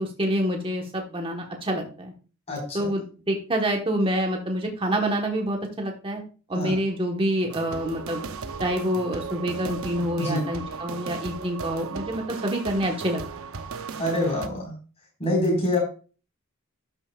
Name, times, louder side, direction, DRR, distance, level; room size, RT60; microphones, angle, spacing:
voice 1, 0.0-2.1 2.7-6.2 6.5-8.2 8.6-13.2, equal, 25° right, 2 dB, 1.3 m, -27 dB
voice 2, 2.5-2.9 6.5-6.8 10.2-10.4 13.9-14.7 15.2-15.8, left 1 dB, 30° left, -1 dB, 4.6 m, -25 dB
sound 1, 7.5-14.5, right 5 dB, 70° right, 0.7 m, -36 dB
12.0 x 7.0 x 2.4 m, 0.37 s
head